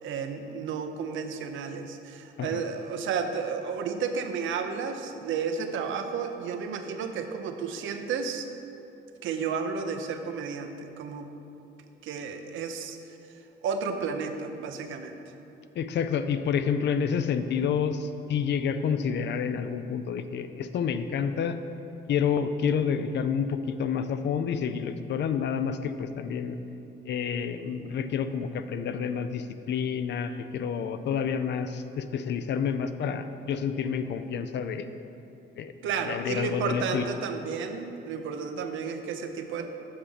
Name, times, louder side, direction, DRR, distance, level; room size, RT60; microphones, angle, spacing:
voice 1, 0.0-8.5 9.2-11.3 12.0-13.0 13.6-15.2 35.8-39.7, right 5 dB, 80° right, 6 dB, 0.7 m, -32 dB
voice 2, 15.8-21.6 22.1-26.6 27.1-34.8 35.6-35.7 36.0-37.1, left 7 dB, 60° left, 10 dB, 0.5 m, -29 dB
7.3 x 5.9 x 5.0 m, 2.8 s
cardioid pair, 90°, 20 cm